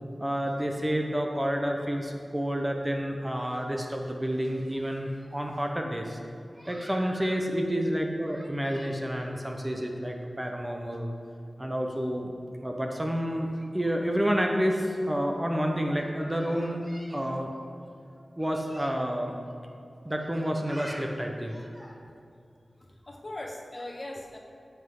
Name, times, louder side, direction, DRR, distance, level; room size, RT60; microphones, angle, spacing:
voice 1, 0.2-6.2 6.6-11.1 11.6-12.3 12.6-17.5 18.4-19.3 20.0-22.0, equal, 15° right, 2 dB, 0.9 m, -29 dB
voice 2, 22.8-24.4, left 1 dB, 40° left, 1 dB, 1.3 m, -40 dB
15.5 x 5.7 x 3.8 m, 2.6 s
wide cardioid pair, 80°, 0 cm